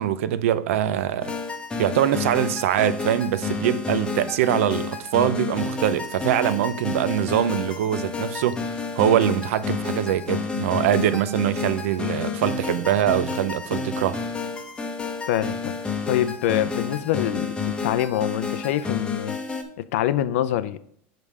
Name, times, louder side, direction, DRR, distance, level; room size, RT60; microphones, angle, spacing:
voice 1, 0.0-1.3 1.8-14.2, right 11 dB, 80° right, 0.5 m, -23 dB
sound 1, 1.2-19.6, left 5 dB, 10° left, 0.8 m, -30 dB
voice 2, 15.3-15.7 16.1-19.4 19.9-20.8, left 12 dB, 70° left, 0.5 m, -25 dB
5.7 x 5.3 x 4.8 m
supercardioid pair, 145°, 7 cm